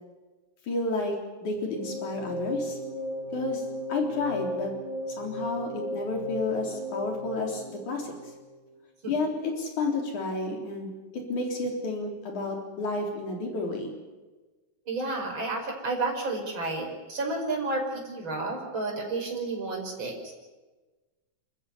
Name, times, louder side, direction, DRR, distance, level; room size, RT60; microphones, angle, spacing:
voice 1, 0.7-1.2 1.4-2.8 3.3-3.6 3.9-4.7 5.2-8.1 9.1-13.9, left 3 dB, 80° left, 1 dB, 5.2 m, -31 dB
sound 1, 1.5-8.7, equal, 15° right, 5.2 m, -35 dB
voice 2, 14.9-20.3, right 3 dB, 40° right, 1 dB, 6.0 m, -31 dB
28.0 x 14.0 x 9.9 m, 1.2 s
omnidirectional pair, 3.4 m